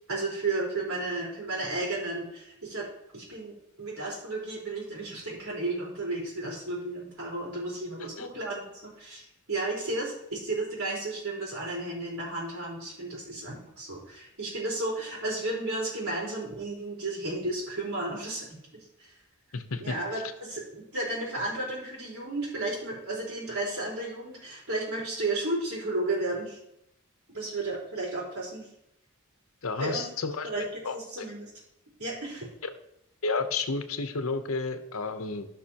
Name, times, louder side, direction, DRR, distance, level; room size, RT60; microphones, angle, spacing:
voice 1, 0.1-2.9 3.1-18.5 19.0-19.1 19.8-26.6 27.3-28.7 29.8-30.1 30.4-31.5 32.0-32.5, right 2 dB, 80° right, -4 dB, 4.2 m, -33 dB
voice 2, 19.5-20.0 29.6-30.5 30.8-31.3 33.2-35.5, left 3 dB, 70° left, 8 dB, 0.9 m, -31 dB
16.5 x 5.9 x 2.9 m, 0.77 s
head